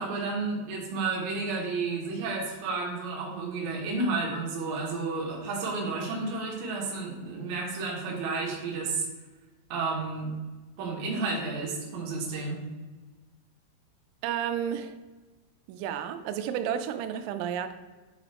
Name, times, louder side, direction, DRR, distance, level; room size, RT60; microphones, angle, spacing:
voice 1, 0.0-9.1 9.7-10.3 10.8-12.6, right 3 dB, 75° right, -3 dB, 2.1 m, -31 dB
voice 2, 14.2-15.0 15.7-17.7, right 9 dB, 90° right, 9 dB, 3.2 m, -31 dB
9.0 x 3.7 x 3.4 m, 1.2 s
omnidirectional pair, 5.8 m